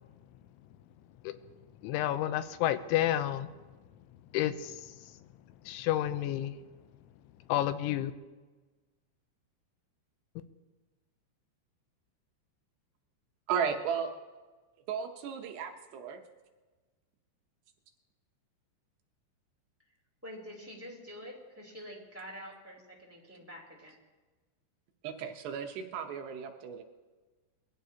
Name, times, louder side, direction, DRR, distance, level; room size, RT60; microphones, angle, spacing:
voice 1, 1.8-3.5 4.3-4.7 5.7-6.5 7.5-8.1, left 13 dB, 90° left, 11 dB, 3.1 m, -30 dB
voice 2, 13.5-14.1 14.9-16.2 25.0-26.8, right 7 dB, 75° right, 4 dB, 2.8 m, -34 dB
voice 3, 20.2-23.9, equal, 5° right, -2 dB, 1.9 m, -47 dB
23.0 x 15.5 x 2.9 m, 1.3 s
omnidirectional pair, 5.4 m